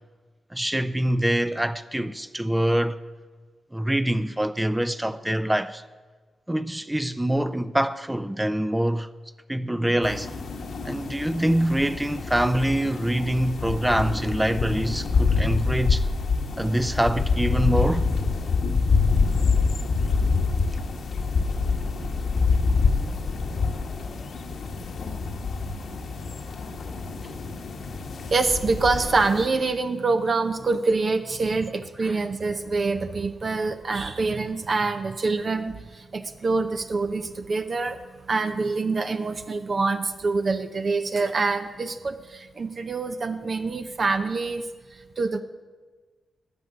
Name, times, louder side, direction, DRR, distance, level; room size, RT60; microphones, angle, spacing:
voice 1, 0.5-3.0 3.7-5.8 6.5-9.1 9.5-10.3 10.8-16.1 16.6-18.1 32.0-32.2, right 1 dB, 10° right, 0.5 m, -25 dB
sound 1, 10.0-29.5, left 4 dB, 75° left, 1.4 m, -26 dB
voice 2, 28.3-38.0 38.3-44.6 45.2-45.4, right 3 dB, 50° right, 0.7 m, -25 dB
12.5 x 6.5 x 9.5 m
cardioid pair, 55°, 0 cm